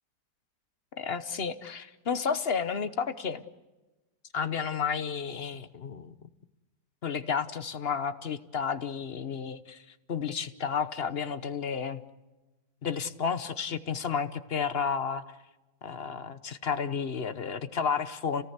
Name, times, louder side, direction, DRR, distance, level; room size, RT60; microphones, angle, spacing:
voice 1, 1.0-3.4 4.3-6.1 7.0-12.0 12.8-15.3 15.8-18.4, left 6 dB, 45° left, 12 dB, 0.9 m, -32 dB
30.0 x 18.5 x 8.1 m, 1.1 s
omnidirectional pair, 2.1 m